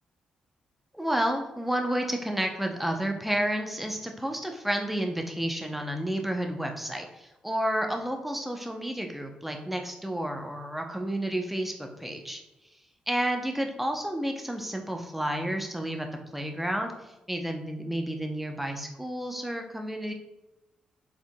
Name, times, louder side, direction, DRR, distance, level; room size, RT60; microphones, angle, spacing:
voice 1, 0.9-12.4 13.1-16.1 16.3-20.1, right 1 dB, 5° right, 3 dB, 0.7 m, -31 dB
5.0 x 3.7 x 2.2 m, 0.99 s
hypercardioid pair, 45°, 3 cm